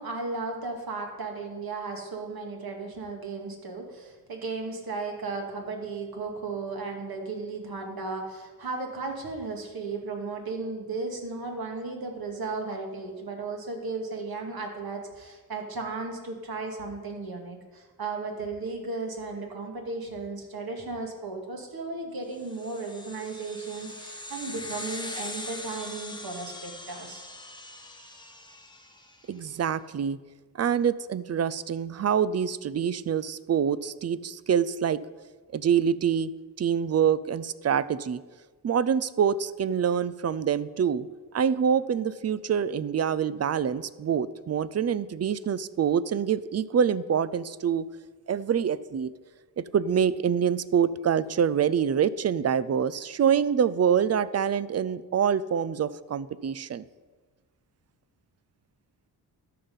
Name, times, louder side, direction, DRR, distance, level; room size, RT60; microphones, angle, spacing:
voice 1, 0.0-27.3, right 3 dB, 55° right, 1 dB, 2.3 m, -35 dB
sound 1, 22.4-29.2, left 2 dB, 10° left, 1.2 m, -41 dB
voice 2, 29.3-30.2 30.5-35.0 35.5-36.3 36.6-38.2 38.6-41.1 41.3-47.9 48.3-49.1 49.6-56.8, right 8 dB, 35° right, 18 dB, 0.5 m, -26 dB
12.5 x 5.7 x 5.4 m, 1.3 s
cardioid pair, 55°, 43 cm